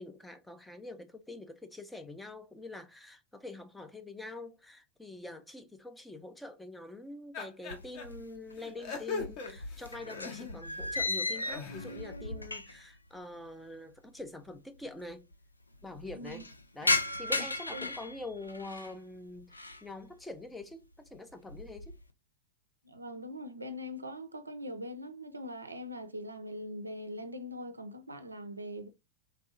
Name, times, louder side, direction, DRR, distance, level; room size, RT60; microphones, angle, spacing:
voice 1, 0.0-15.3 15.8-16.5 16.7-22.0, left 2 dB, 5° left, 0.4 m, -45 dB
sound 1, 7.3-8.0 8.6-10.8 11.2-12.0, left 4 dB, 40° left, 0.7 m, -40 dB
sound 2, 7.7-8.6 8.9-13.0 13.2-13.3 14.2-14.3 14.5-14.6 14.8-15.3 15.7-18.9 19.4-19.9 20.3-20.7 21.1-22.0, left 2 dB, 85° left, 0.3 m, -36 dB
voice 2, 22.8-28.9, equal, 80° right, 0.4 m, -42 dB
3.2 x 2.6 x 2.5 m
figure-of-eight pair, 90°, 0 cm